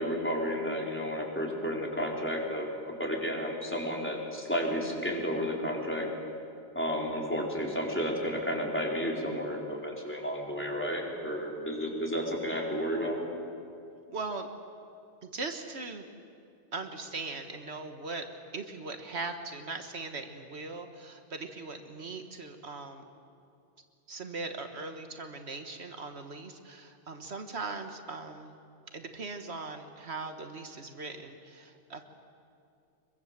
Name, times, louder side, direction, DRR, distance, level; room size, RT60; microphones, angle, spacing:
voice 1, 0.0-6.1 6.7-13.2, equal, 10° left, -2 dB, 4.1 m, -32 dB
voice 2, 14.1-14.5 15.2-16.1 16.7-18.3 18.5-23.0 24.1-28.6 28.9-32.0, right 3 dB, 75° right, 6 dB, 1.7 m, -39 dB
25.0 x 22.5 x 7.4 m, 2.5 s
omnidirectional pair, 1.1 m